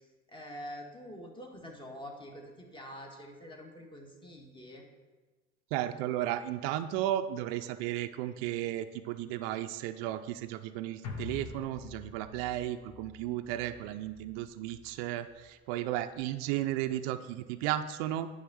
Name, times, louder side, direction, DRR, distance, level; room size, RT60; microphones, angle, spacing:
voice 1, 0.3-4.8, equal, 15° left, 1 dB, 1.7 m, -46 dB
voice 2, 5.7-18.3, right 13 dB, 65° right, 9 dB, 0.5 m, -34 dB
sound 1, 11.0-15.5 15.8-15.9, left 5 dB, 55° left, 1.3 m, -46 dB
9.3 x 3.6 x 6.3 m, 1.3 s
hypercardioid pair, 65°, 32 cm